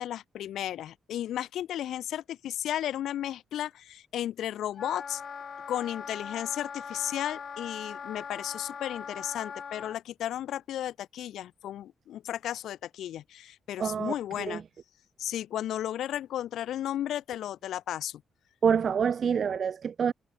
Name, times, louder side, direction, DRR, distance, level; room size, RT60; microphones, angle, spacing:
voice 1, 0.0-5.2 5.7-14.6 15.2-18.2, left 11 dB, 85° left, 0.9 m, -34 dB
Wind instrument woodwind instrument, 4.7-10.0, left 6 dB, 50° left, 5.7 m, -40 dB
voice 2, 13.8-14.1 14.5-14.6 18.6-20.1, right 7 dB, 55° right, 0.5 m, -26 dB
cardioid pair, 95°, 0 cm